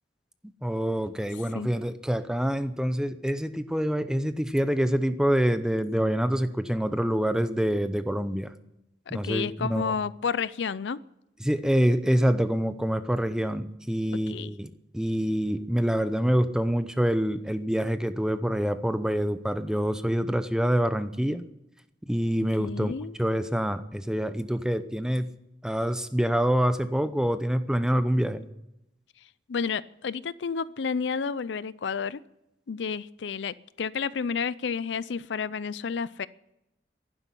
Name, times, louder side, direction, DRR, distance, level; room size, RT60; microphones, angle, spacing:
voice 1, 0.6-8.5 9.1-9.9 11.4-21.5 22.1-22.9 23.2-25.4 25.6-28.5, equal, 5° right, 11 dB, 0.6 m, -26 dB
voice 2, 9.1-11.0 14.3-14.6 22.6-23.2 29.5-32.2 32.7-36.3, left 6 dB, 75° left, 18 dB, 0.5 m, -31 dB
11.5 x 9.8 x 9.8 m, 0.86 s
head